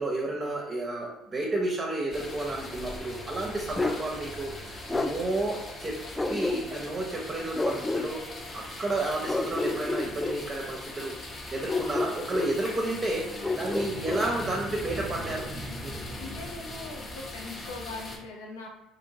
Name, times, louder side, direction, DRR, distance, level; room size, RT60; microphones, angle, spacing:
voice 1, 0.0-5.9 6.3-8.2 8.5-13.3 13.5-15.5 15.8-16.0, right 2 dB, 30° right, -2 dB, 0.7 m, -31 dB
sound 1, 2.1-18.2, left 1 dB, 35° left, 0.9 m, -40 dB
Bark, 3.8-4.0 4.9-5.1 6.2-6.9 7.5-8.1 9.3-10.4 11.7-12.6 13.4-14.3, left 2 dB, 15° left, 0.3 m, -29 dB
voice 2, 16.1-18.7, left 3 dB, 80° left, 0 dB, 0.6 m, -41 dB
2.9 x 2.7 x 2.7 m, 1.0 s
hypercardioid pair, 55°, 0 cm